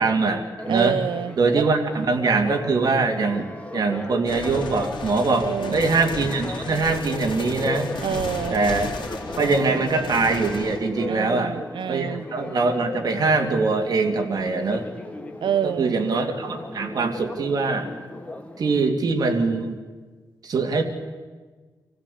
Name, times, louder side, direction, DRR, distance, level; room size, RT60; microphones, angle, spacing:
voice 1, 0.0-1.0 1.4-7.9 8.5-9.0 9.4-11.6 11.9-14.8 15.6-17.9 18.6-19.8 20.4-20.8, right 3 dB, 50° right, 4 dB, 2.4 m, -23 dB
Church bell, 0.6-18.9, left 2 dB, 15° left, 1.6 m, -36 dB
voice 2, 0.7-1.6 5.3-5.8 8.0-8.6 11.1-12.2 15.4-15.9, right 8 dB, 80° right, 15 dB, 0.7 m, -27 dB
sound 1, 4.2-10.8, left 4 dB, 80° left, 3.1 m, -34 dB
26.0 x 15.5 x 8.5 m, 1.4 s
wide cardioid pair, 175°, 8 cm